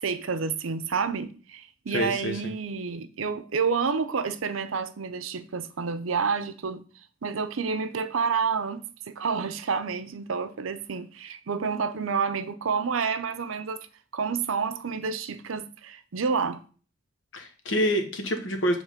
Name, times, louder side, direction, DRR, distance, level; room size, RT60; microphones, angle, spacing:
voice 1, 0.0-6.8 7.2-13.9 14.1-16.6, right 5 dB, 85° right, 0.6 m, -29 dB
voice 2, 1.9-2.5 17.3-18.8, equal, 70° left, 1.1 m, -27 dB
7.4 x 3.5 x 5.0 m
head